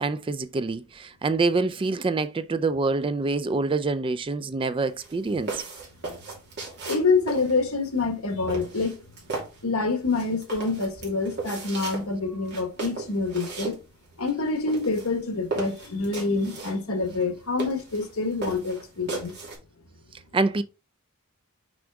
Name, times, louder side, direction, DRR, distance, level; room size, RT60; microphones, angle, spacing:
voice 1, 0.0-5.6 20.3-20.6, right 3 dB, 25° right, 0.3 m, -26 dB
sound 1, 4.9-19.6, right 3 dB, 50° right, 2.8 m, -37 dB
voice 2, 6.8-9.0 9.6-13.8 14.2-19.3, left 3 dB, 70° left, 1.5 m, -26 dB
6.1 x 4.9 x 3.5 m
head